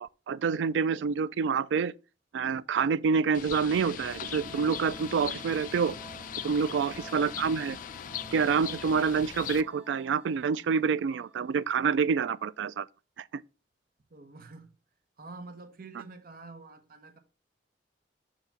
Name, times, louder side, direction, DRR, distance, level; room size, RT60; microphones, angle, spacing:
voice 1, 0.0-1.9 2.3-5.9 6.4-7.8 8.3-12.9 13.2-13.4, right 5 dB, 85° right, 0.3 m, -27 dB
sound 1, 3.1-11.7, right 2 dB, 10° right, 1.4 m, -50 dB
Bird, 3.3-9.6, left 9 dB, 50° left, 0.3 m, -40 dB
voice 2, 6.5-6.8 14.1-14.7 15.2-17.2, right 3 dB, 55° right, 0.9 m, -47 dB
7.0 x 2.9 x 5.6 m
head